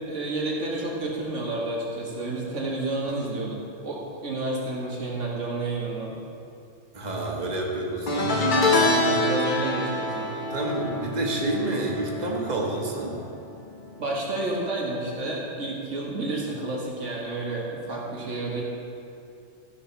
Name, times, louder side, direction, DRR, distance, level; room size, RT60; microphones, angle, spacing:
voice 1, 0.0-6.2 8.7-10.3 14.0-18.6, right 2 dB, 90° right, -3 dB, 2.1 m, -30 dB
voice 2, 6.9-8.5 10.5-13.2, right 2 dB, 35° right, -2 dB, 1.5 m, -29 dB
sound 1, 8.1-13.5 13.7-14.1 15.3-15.4, left 2 dB, 45° left, 1.1 m, -26 dB
14.0 x 5.8 x 5.7 m, 2.5 s
omnidirectional pair, 1.2 m